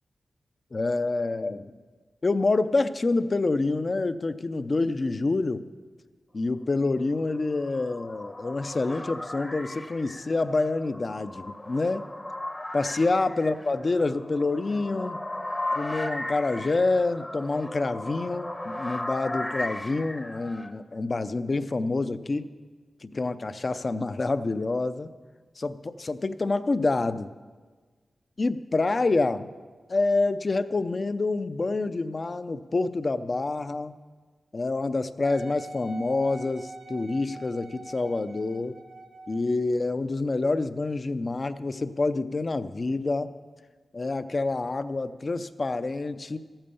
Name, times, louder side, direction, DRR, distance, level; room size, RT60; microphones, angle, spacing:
voice 1, 0.7-1.7 2.2-5.7 6.3-12.0 12.7-15.2 15.7-22.5 23.0-25.1 25.6-27.3 28.4-29.5 29.9-34.0 34.5-38.7 39.3-43.3 43.9-46.4, left 3 dB, 45° left, 12 dB, 0.5 m, -27 dB
sound 1, 7.3-20.7, left 1 dB, 15° left, 0.8 m, -36 dB
Wind instrument woodwind instrument, 35.2-39.5 40.2-40.3, right 1 dB, 85° right, 2.4 m, -43 dB
14.0 x 8.9 x 6.9 m, 1.4 s
wide cardioid pair, 80°, 0 cm